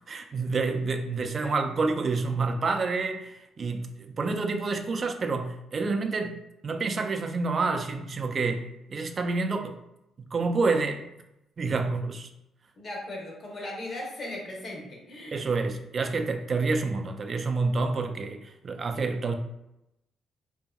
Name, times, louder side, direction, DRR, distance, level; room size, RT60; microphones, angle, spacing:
voice 1, 0.0-6.4 6.6-9.8 10.2-11.0 11.6-12.3 15.3-19.4, right 3 dB, 40° right, 6 dB, 0.3 m, -28 dB
voice 2, 12.8-15.5, left 1 dB, 50° left, -1 dB, 0.8 m, -38 dB
2.6 x 2.6 x 2.3 m, 0.86 s
cardioid pair, 90°, 0 cm